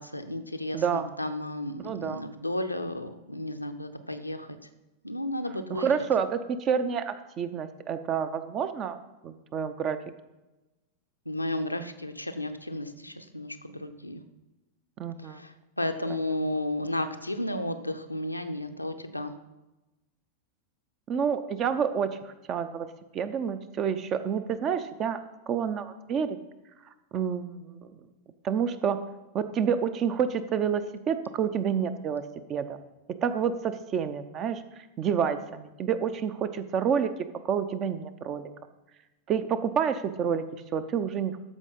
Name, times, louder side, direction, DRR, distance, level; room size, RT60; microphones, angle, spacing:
voice 1, 0.0-4.6 5.0-5.9 11.3-14.2 15.2-19.3, left 1 dB, 85° left, 6 dB, 0.7 m, -33 dB
voice 2, 0.7-1.0 1.8-2.2 5.7-9.0 9.2-10.0 15.0-15.4 16.1-16.3 21.1-22.9 23.1-25.2 25.5-26.4 27.1-27.9 28.4-29.0 29.3-32.2 32.5-32.8 33.2-34.6 35.0-37.1 37.4-38.5 39.3-40.4 40.7-41.3, right 7 dB, 30° right, 11 dB, 0.7 m, -28 dB
13.5 x 4.9 x 5.5 m, 1.0 s
figure-of-eight pair, 90°, 0 cm